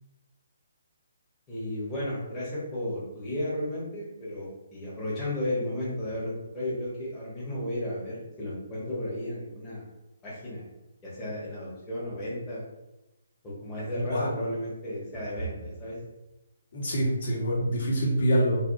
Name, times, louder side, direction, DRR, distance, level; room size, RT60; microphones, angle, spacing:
voice 1, 1.5-9.9 10.2-10.7 11.0-12.7 13.4-16.0, left 1 dB, 20° left, -8 dB, 1.0 m, -33 dB
voice 2, 16.7-18.7, equal, 60° left, -5 dB, 1.3 m, -25 dB
2.9 x 2.6 x 2.6 m, 0.96 s
figure-of-eight pair, 145°, 0 cm